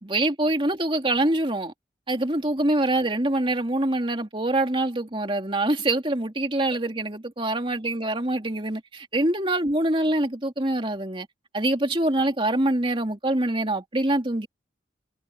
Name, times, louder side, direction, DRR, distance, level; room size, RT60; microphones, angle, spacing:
voice 1, 0.0-1.7 2.1-11.3 11.5-14.5, right 1 dB, 30° right, 2.7 m, -25 dB
head